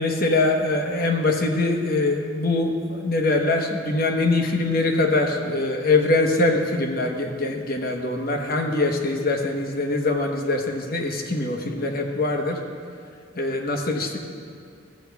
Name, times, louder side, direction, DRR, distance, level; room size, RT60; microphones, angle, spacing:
voice 1, 0.0-12.6 13.4-14.2, left 2 dB, 50° left, 3 dB, 1.1 m, -23 dB
15.5 x 7.6 x 3.5 m, 2.3 s
head